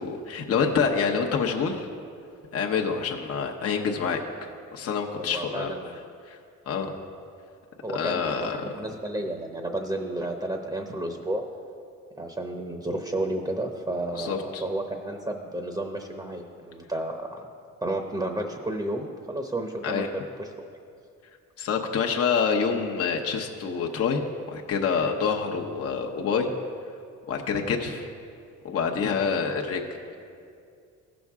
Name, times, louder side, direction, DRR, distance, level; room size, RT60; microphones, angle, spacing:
voice 1, 0.0-1.9 2.5-4.2 4.7-5.7 6.3-6.4 6.7-6.9 7.9-8.6 14.2-14.6 19.8-20.1 21.6-26.5 27.3-28.1 28.6-29.8, left 6 dB, 50° left, 1 dB, 0.9 m, -27 dB
voice 2, 5.2-6.0 7.8-11.4 12.2-17.4 17.8-20.7, right 1 dB, 10° right, 4 dB, 0.8 m, -32 dB
15.5 x 6.1 x 3.6 m, 2.4 s
cardioid pair, 90°, 30 cm